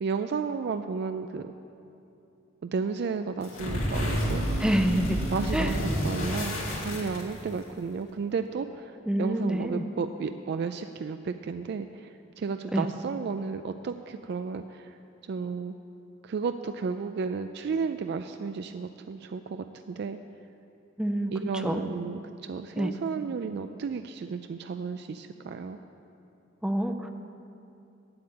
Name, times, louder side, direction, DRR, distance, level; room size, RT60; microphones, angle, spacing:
voice 1, 0.0-1.5 2.6-4.4 5.3-12.1 12.4-14.9 15.3-15.7 16.2-20.2 21.3-25.8, right 5 dB, 55° right, 8 dB, 0.3 m, -33 dB
sound 1, 3.4-7.6, equal, 90° left, 2.6 m, -30 dB
voice 2, 4.6-5.2 5.5-5.7 9.1-9.8 12.7-12.9 21.0-21.8 22.8-22.9 26.6-27.1, right 1 dB, 5° right, 5 dB, 0.5 m, -27 dB
8.6 x 7.9 x 8.5 m, 2.8 s
head